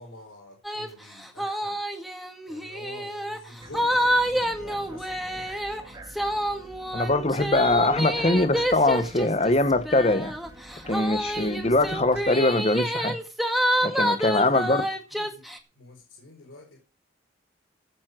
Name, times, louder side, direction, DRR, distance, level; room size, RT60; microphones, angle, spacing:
voice 1, 0.0-1.8 2.5-5.8 14.2-16.8, left 1 dB, 85° left, 3.9 m, -47 dB
sound 1, 0.6-0.9 1.2-15.6, equal, ahead, 1.7 m, -28 dB
sound 2, 3.6-12.3, right 1 dB, 25° right, 2.8 m, -46 dB
voice 2, 6.9-10.3 10.9-13.2 13.8-14.8, left 2 dB, 35° left, 1.0 m, -22 dB
15.0 x 7.2 x 6.2 m
head